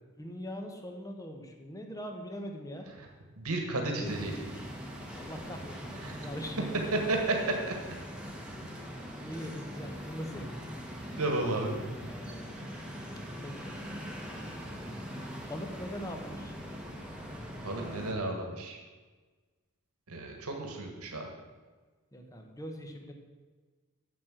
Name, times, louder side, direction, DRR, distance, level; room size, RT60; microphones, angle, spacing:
voice 1, 0.2-2.9 3.9-4.2 5.1-6.7 8.8-10.6 11.9-12.6 13.4-13.7 15.5-16.5 22.1-23.1, equal, 15° left, 3 dB, 1.2 m, -42 dB
voice 2, 3.4-4.3 6.0-6.3 6.9-7.7 11.2-11.7 17.6-18.8 20.1-21.3, right 2 dB, 80° right, 2 dB, 1.7 m, -32 dB
sound 1, 4.0-18.1, equal, 5° right, 1.4 m, -42 dB
7.5 x 7.5 x 7.4 m, 1.4 s
head